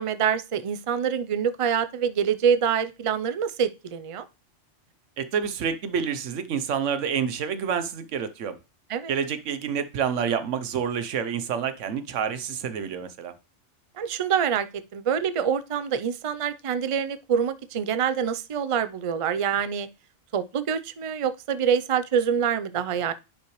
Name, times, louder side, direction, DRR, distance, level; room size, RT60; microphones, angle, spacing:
voice 1, 0.0-4.2 8.9-9.1 14.0-14.7 14.9-19.9 20.3-23.1, right 7 dB, 40° right, 0.5 m, -25 dB
voice 2, 5.2-8.6 9.1-13.3, right 7 dB, 90° right, 1.1 m, -28 dB
10.5 x 5.7 x 3.1 m
omnidirectional pair, 1.2 m